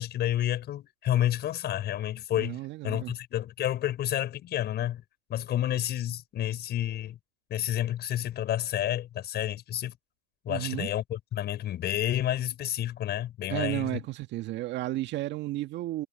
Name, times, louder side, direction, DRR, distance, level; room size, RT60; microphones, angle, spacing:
voice 1, 0.0-5.0 5.3-7.2 7.5-10.0 10.4-13.9, left 12 dB, 25° left, 6.5 m, -30 dB
voice 2, 2.3-3.1 10.5-10.9 13.5-16.1, right 16 dB, 30° right, 2.0 m, -33 dB
hypercardioid pair, 120°, 38 cm